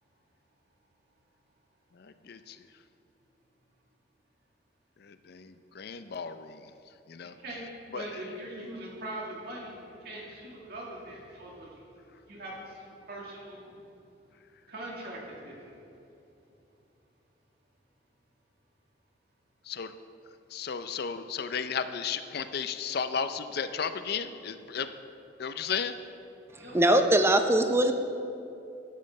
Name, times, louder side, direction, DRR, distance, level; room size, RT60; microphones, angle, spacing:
voice 1, 1.9-2.6 5.0-6.7 7.1-7.3 7.9-8.2 19.7-19.9 20.5-24.9 25.4-25.9, left 6 dB, 60° left, 11 dB, 0.5 m, -34 dB
voice 2, 7.9-11.7 12.3-13.7 14.7-15.5 26.6-26.8, right 1 dB, 60° right, -3 dB, 2.3 m, -41 dB
voice 3, 26.7-27.9, right 1 dB, 15° right, 7 dB, 0.5 m, -21 dB
11.5 x 5.5 x 6.5 m, 2.7 s
head